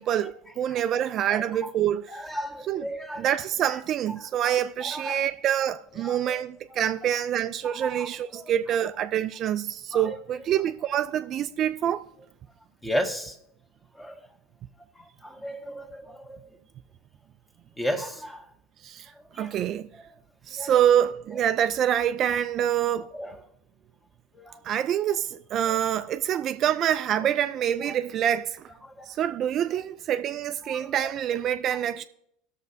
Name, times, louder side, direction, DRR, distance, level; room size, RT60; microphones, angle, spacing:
voice 1, 0.0-2.2 2.7-2.9 3.2-12.1 18.8-19.1 19.4-19.9 20.5-23.1 24.6-28.7 29.0-32.0, right 10 dB, 45° right, 0.3 m, -26 dB
voice 2, 0.7-1.0 1.3-1.7 2.1-3.3 3.7-3.8 4.8-5.2 6.0-6.4 7.6-8.1 8.3-8.5 9.9-10.2 12.8-13.4 14.0-14.2 15.2-16.4 17.8-18.4 19.3-19.5 20.6-20.8 23.0-23.4 24.3-24.6 25.6-25.8 27.9-28.0 28.8-29.1 30.7-31.1, equal, 10° left, 1.4 m, -34 dB
18.0 x 6.6 x 2.7 m
hypercardioid pair, 80°, 0 cm